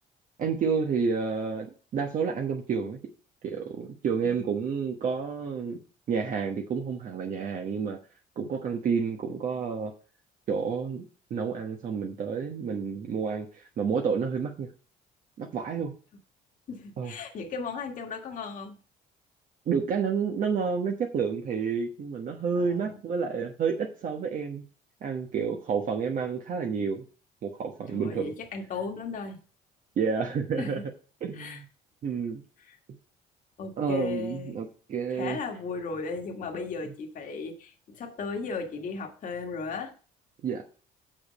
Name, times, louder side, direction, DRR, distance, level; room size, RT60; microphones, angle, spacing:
voice 1, 0.4-3.0 3.4-5.8 6.1-8.0 8.4-9.9 10.5-11.0 11.3-14.7 15.4-15.9 17.0-17.1 19.7-24.6 25.0-27.0 27.4-28.3 30.0-30.8 31.2-31.6 32.0-32.4 33.8-35.4 40.4-40.6, right 6 dB, 50° right, 2 dB, 1.2 m, -30 dB
voice 2, 16.7-18.7 22.5-23.0 27.9-29.4 30.6-30.8 31.3-31.6 32.6-32.8 33.6-34.5 35.1-39.9, left 4 dB, 50° left, 2 dB, 1.7 m, -36 dB
6.6 x 6.1 x 5.2 m, 0.38 s
cardioid pair, 110°, 17 cm